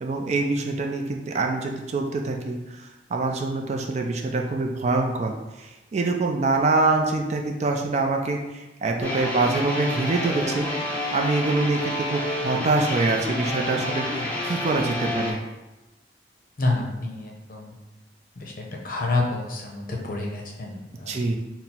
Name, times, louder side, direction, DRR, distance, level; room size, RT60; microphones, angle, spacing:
voice 1, 0.0-10.7 11.1-15.4 21.1-21.4, right 3 dB, 40° right, 2 dB, 0.3 m, -25 dB
sound 1, 9.0-15.3, left 1 dB, 10° left, 0.7 m, -29 dB
voice 2, 16.6-17.7 18.4-21.4, left 2 dB, 50° left, 0 dB, 0.6 m, -29 dB
4.2 x 2.0 x 4.1 m, 1.1 s
head